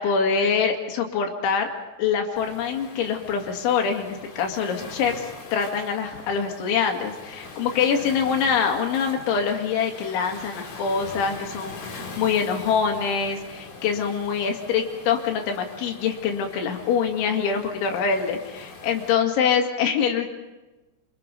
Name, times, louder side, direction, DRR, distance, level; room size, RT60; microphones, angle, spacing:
voice 1, 0.0-1.7 2.0-20.3, left 6 dB, 70° left, 3 dB, 4.5 m, -24 dB
Waves surf, 2.4-19.1, left 3 dB, 55° left, 5.1 m, -42 dB
27.5 x 25.5 x 5.4 m, 1.1 s
omnidirectional pair, 5.7 m